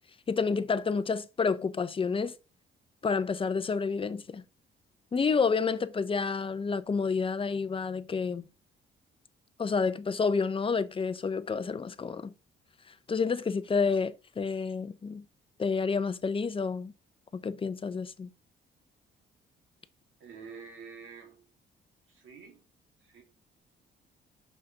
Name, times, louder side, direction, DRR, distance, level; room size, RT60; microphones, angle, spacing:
voice 1, 0.3-2.3 3.0-4.4 5.1-8.4 9.6-12.3 13.1-15.2 15.6-16.9 17.3-18.3, left 5 dB, 25° left, 0.6 m, -29 dB
voice 2, 20.2-21.5 22.1-22.6 23.0-23.2, right 5 dB, 80° right, 2.5 m, -48 dB
5.7 x 5.1 x 4.0 m
cardioid pair, 90°, 20 cm